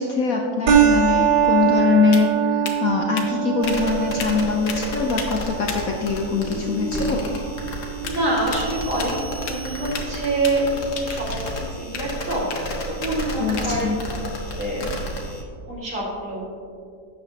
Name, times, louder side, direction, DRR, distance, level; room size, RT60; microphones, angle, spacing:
voice 1, 0.0-7.2 13.4-14.0, left 5 dB, 60° left, 1 dB, 1.0 m, -23 dB
sound 1, 0.7-9.6, right 8 dB, 65° right, 1.4 m, -24 dB
sound 2, 0.8-15.6, left 6 dB, 85° left, 1.6 m, -39 dB
sound 3, 3.6-15.4, equal, 45° left, 1.5 m, -32 dB
voice 2, 6.5-7.1 8.0-10.7 11.0-15.4 15.7-16.4, right 2 dB, 45° right, -5 dB, 2.4 m, -27 dB
12.0 x 8.0 x 2.9 m, 2.3 s
omnidirectional pair, 2.0 m